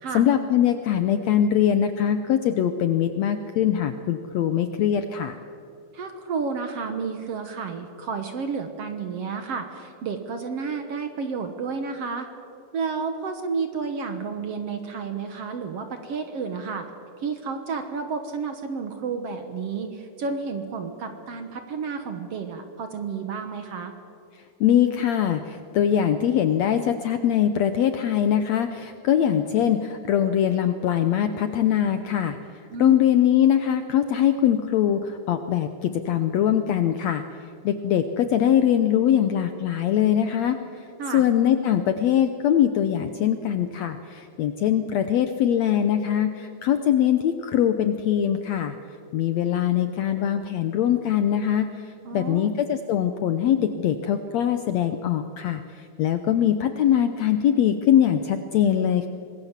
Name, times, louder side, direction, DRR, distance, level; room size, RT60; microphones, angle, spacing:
voice 1, 0.1-5.4 24.6-37.2 37.6-48.8 49.1-59.1, left 10 dB, 75° left, 9 dB, 1.6 m, -22 dB
voice 2, 5.9-12.3 12.7-16.9 17.2-23.9 32.7-33.0 41.0-41.2 52.1-52.6, right 5 dB, 55° right, 7 dB, 1.9 m, -31 dB
26.0 x 20.5 x 7.4 m, 2.6 s
omnidirectional pair, 3.9 m